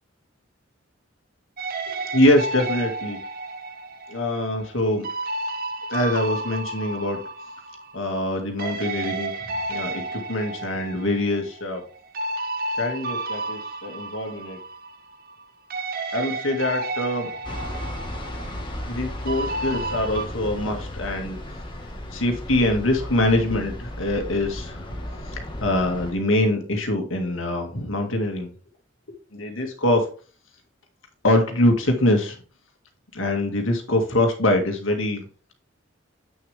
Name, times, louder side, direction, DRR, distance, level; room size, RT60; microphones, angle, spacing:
sound 1, 1.6-8.3 8.6-15.4 15.7-20.3, right 2 dB, 50° right, 0.9 m, -32 dB
voice 1, 2.1-3.2 4.1-5.0 5.9-7.2 7.9-9.3 9.7-11.8 12.8-14.6 16.1-17.3 18.9-21.4 22.1-24.8 25.3-28.5 29.3-30.1 31.2-32.4 33.1-35.5, left 1 dB, 75° left, 3 dB, 2.2 m, -24 dB
sound 2, 17.4-26.1, left 1 dB, 25° left, 1.7 m, -34 dB
8.6 x 6.5 x 3.5 m, 0.38 s
head